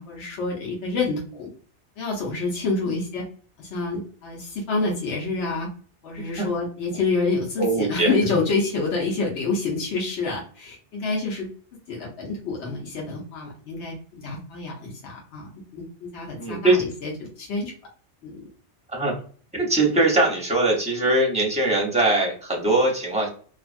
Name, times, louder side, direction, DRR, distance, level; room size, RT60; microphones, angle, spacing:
voice 1, 0.0-1.5 2.0-3.2 3.6-5.7 6.0-11.5 11.9-17.7 18.2-18.4, left 3 dB, 80° left, -2 dB, 1.0 m, -28 dB
voice 2, 7.6-8.1 16.4-16.8 18.9-19.1 19.5-23.3, right 2 dB, 5° right, -2 dB, 0.6 m, -21 dB
2.5 x 2.4 x 2.4 m, 0.43 s
omnidirectional pair, 1.2 m